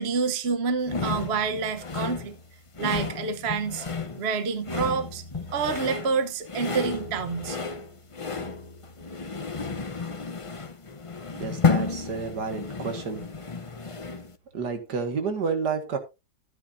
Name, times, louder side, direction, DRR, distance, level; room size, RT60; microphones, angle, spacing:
voice 1, 0.0-2.3 2.8-3.8 4.2-5.2 5.5-7.6, right 5 dB, 40° right, 1.1 m, -28 dB
sound 1, 0.9-14.4, left 4 dB, 40° left, 0.4 m, -32 dB
voice 2, 11.4-13.3 14.5-16.0, right 5 dB, 65° right, 2.3 m, -30 dB
13.5 x 9.6 x 2.6 m
omnidirectional pair, 2.0 m